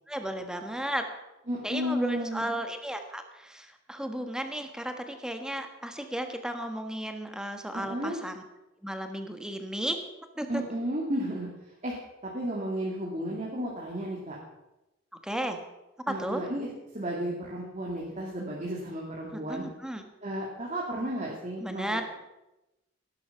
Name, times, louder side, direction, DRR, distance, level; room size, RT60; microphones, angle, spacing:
voice 1, 0.1-1.0 1.6-8.4 8.8-10.0 10.4-10.6 15.2-15.6 16.1-16.4 19.3-20.0 21.6-22.0, right 1 dB, 5° right, 6 dB, 1.4 m, -34 dB
voice 2, 1.5-2.5 7.7-8.2 10.5-11.5 11.8-11.9 12.2-14.4 16.1-19.7 20.2-22.0, right 1 dB, 35° right, -3 dB, 2.5 m, -33 dB
17.5 x 11.5 x 5.8 m, 0.96 s
head